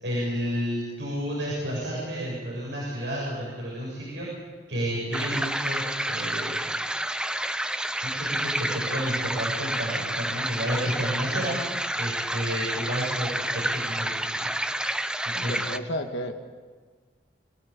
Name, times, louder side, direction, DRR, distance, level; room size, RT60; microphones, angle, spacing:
voice 1, 0.0-4.3 4.7-6.7 8.0-11.6 12.0-14.5 15.2-15.6, equal, 75° right, -5 dB, 7.3 m, -31 dB
sound 1, 5.1-15.8, right 1 dB, 5° right, 0.7 m, -29 dB
voice 2, 15.3-16.3, equal, 80° left, 4 dB, 1.9 m, -33 dB
27.0 x 16.5 x 8.9 m, 1.5 s
head